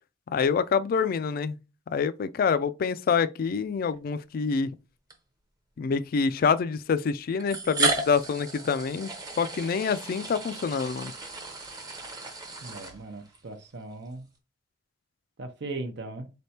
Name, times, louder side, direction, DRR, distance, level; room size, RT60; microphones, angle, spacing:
voice 1, 0.3-1.6 1.9-4.7 5.8-11.1, left 5 dB, 55° left, 0.3 m, -26 dB
sound 1, 3.9-4.1 5.1-5.2 6.4-6.5 7.4-13.4, right 3 dB, 20° right, 0.7 m, -33 dB
voice 2, 12.6-14.3 15.4-16.3, right 2 dB, 65° right, 0.6 m, -38 dB
4.2 x 3.4 x 2.8 m
head